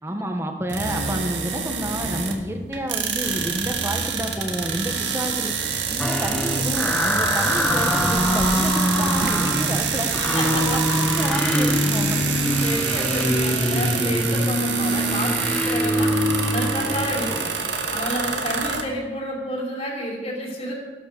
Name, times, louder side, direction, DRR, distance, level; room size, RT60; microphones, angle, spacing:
voice 1, 0.0-5.5 5.9-12.2, equal, 15° right, 4 dB, 1.6 m, -30 dB
sound 1, 0.7-2.5 2.7-18.8, right 6 dB, 85° right, 2.1 m, -27 dB
sound 2, 6.0-17.4, equal, 5° left, 1.5 m, -24 dB
sound 3, 7.5-13.5, right 2 dB, 65° right, 2.0 m, -35 dB
voice 2, 10.2-10.9 12.6-17.5 17.9-20.7, equal, 35° left, -2 dB, 5.3 m, -30 dB
16.0 x 12.0 x 7.0 m, 1.3 s
head